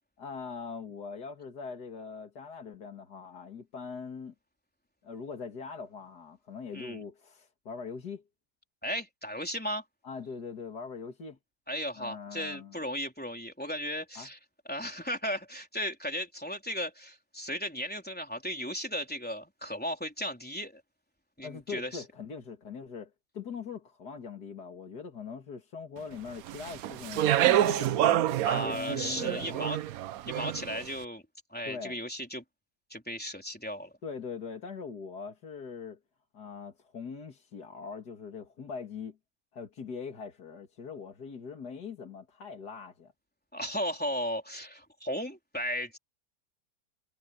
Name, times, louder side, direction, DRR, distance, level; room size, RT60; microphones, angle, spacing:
voice 1, 0.2-4.3 5.0-8.2 10.0-11.4 12.0-12.8 14.2-14.3 21.4-29.7 31.6-32.0 34.0-36.0 36.3-39.2 39.5-43.1, left 5 dB, 65° left, 2.8 m, -42 dB
voice 2, 8.8-9.8 11.7-14.4 14.7-20.8 21.4-22.0 28.4-29.8 30.3-31.2 31.5-32.4 32.9-33.9 43.5-46.0, equal, 5° left, 3.7 m, -35 dB
Speech, 26.5-30.8, right 13 dB, 65° right, 1.0 m, -27 dB
omnidirectional pair, 1.8 m